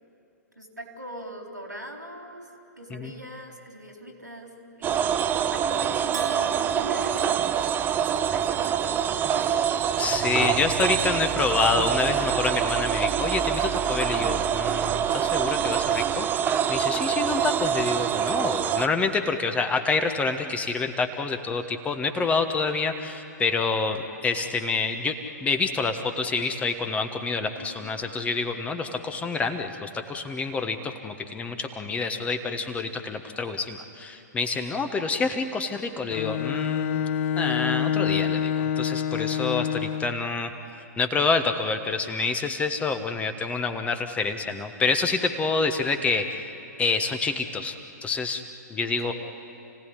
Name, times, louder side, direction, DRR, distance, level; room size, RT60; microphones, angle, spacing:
voice 1, 0.6-2.5 2.8-5.1 5.5-9.6 27.6-28.0 34.4-34.9 45.2-45.6 48.9-49.1, equal, 90° right, 2 dB, 4.1 m, -41 dB
sound 1, 4.8-18.9, right 9 dB, 20° right, 0.7 m, -25 dB
Bell, 6.1-8.3, right 4 dB, 65° right, 1.1 m, -41 dB
voice 2, 10.0-25.1 25.4-37.0 37.4-40.5 41.0-46.4 46.8-47.7 48.0-48.4 48.7-49.1, left 4 dB, 15° left, 7 dB, 1.3 m, -27 dB
Bowed string instrument, 36.1-40.3, left 8 dB, 45° left, 0.6 m, -27 dB
29.0 x 17.0 x 9.8 m, 2.7 s
figure-of-eight pair, 110°, 10 cm